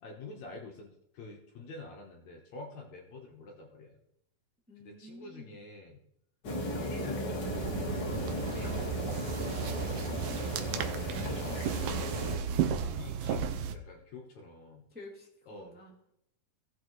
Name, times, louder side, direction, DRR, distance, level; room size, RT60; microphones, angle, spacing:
voice 1, 0.0-4.0 4.8-6.0 6.7-9.2 10.8-13.4 13.7-14.9 15.5-15.7, left 3 dB, 65° left, 0 dB, 2.2 m, -47 dB
voice 2, 4.7-5.6 9.1-10.8 14.9-16.0, left 1 dB, 5° right, -4 dB, 1.6 m, -50 dB
sound 1, 6.4-12.4, equal, 40° left, 1.7 m, -35 dB
sound 2, 7.4-13.8, right 8 dB, 85° right, 2.4 m, -34 dB
17.0 x 6.4 x 3.1 m, 0.77 s
omnidirectional pair, 3.9 m